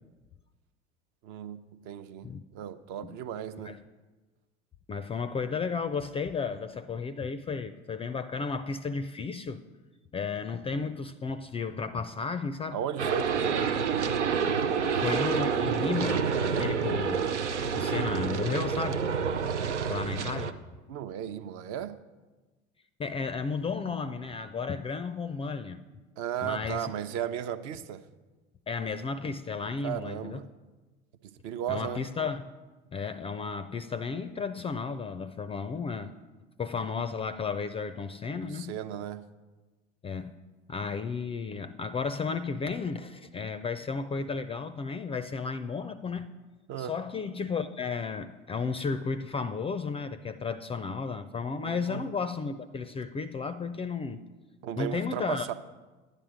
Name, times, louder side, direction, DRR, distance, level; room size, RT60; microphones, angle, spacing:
voice 1, 1.2-3.8 12.7-13.7 20.9-22.0 26.2-28.0 29.8-30.5 31.2-32.1 38.4-39.3 46.7-46.9 51.6-52.0 54.6-55.5, right 10 dB, 50° right, 11 dB, 0.7 m, -35 dB
voice 2, 4.9-9.6 10.1-12.8 14.8-17.2 17.7-19.0 19.9-20.5 23.0-25.8 26.4-26.9 28.7-30.4 31.7-32.4 32.9-36.1 36.6-38.7 40.0-40.3 40.7-46.3 46.8-54.2 54.8-55.5, left 5 dB, 15° left, 12 dB, 0.4 m, -33 dB
sound 1, 13.0-20.5, right 6 dB, 90° right, 0.6 m, -28 dB
11.0 x 9.9 x 5.0 m, 1.2 s
figure-of-eight pair, 70°, 34 cm